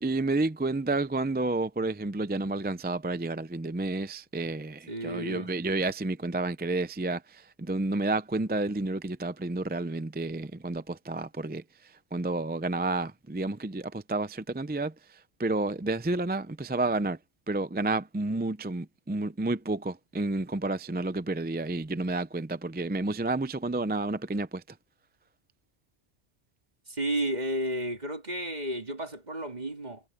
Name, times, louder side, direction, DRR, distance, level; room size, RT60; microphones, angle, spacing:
voice 1, 0.0-17.2 17.5-24.6, right 2 dB, 15° right, 0.3 m, -30 dB
voice 2, 4.9-5.5 26.9-30.0, right 1 dB, 40° right, 2.6 m, -32 dB
omnidirectional pair, 1.1 m